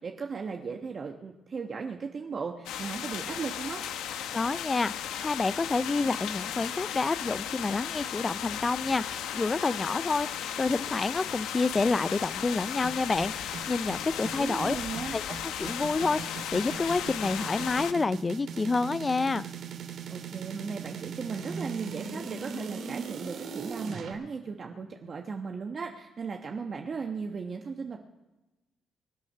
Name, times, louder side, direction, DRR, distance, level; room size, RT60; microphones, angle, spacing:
voice 1, 0.0-3.8 14.4-15.1 20.1-28.0, right 5 dB, 45° right, 2 dB, 1.2 m, -36 dB
sound 1, 2.7-17.9, left 9 dB, 90° left, 1.0 m, -35 dB
voice 2, 4.3-14.8 15.1-15.2 15.6-19.5, left 3 dB, 25° left, 18 dB, 0.4 m, -28 dB
sound 2, 12.8-24.1, right 6 dB, 70° right, 2.6 m, -39 dB
25.5 x 9.9 x 5.6 m, 1.1 s
cardioid pair, 90°, 0 cm